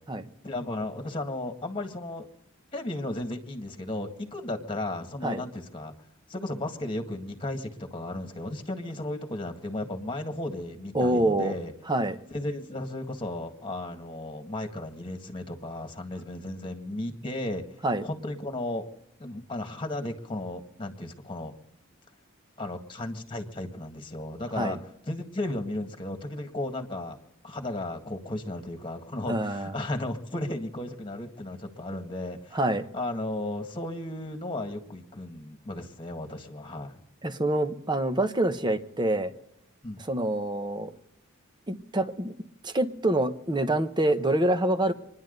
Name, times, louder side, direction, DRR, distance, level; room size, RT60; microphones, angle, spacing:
voice 1, 0.4-2.3 2.7-5.9 6.3-11.7 12.3-17.6 18.0-18.9 19.2-21.5 22.6-24.8 25.1-27.2 27.4-32.6 32.9-37.0 39.8-40.0, left 1 dB, 25° left, 5 dB, 1.8 m, -34 dB
voice 2, 10.9-11.5 11.9-12.2 17.8-18.1 24.6-24.8 29.3-29.7 32.5-32.9 37.2-39.3 40.0-40.9 41.7-42.3 42.6-44.9, right 1 dB, 20° right, 9 dB, 1.0 m, -26 dB
27.5 x 10.5 x 4.0 m, 0.83 s
head